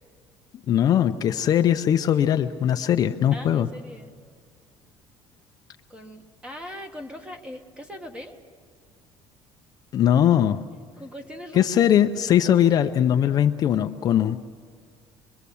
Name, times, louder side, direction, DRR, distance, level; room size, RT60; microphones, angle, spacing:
voice 1, 0.7-3.7 9.9-10.6 11.5-14.4, left 10 dB, 40° left, 7 dB, 0.6 m, -20 dB
voice 2, 3.3-4.1 5.9-8.4 11.0-11.9, equal, 10° right, 6 dB, 1.4 m, -40 dB
25.5 x 22.0 x 7.0 m, 2.1 s
cardioid pair, 160°, 10 cm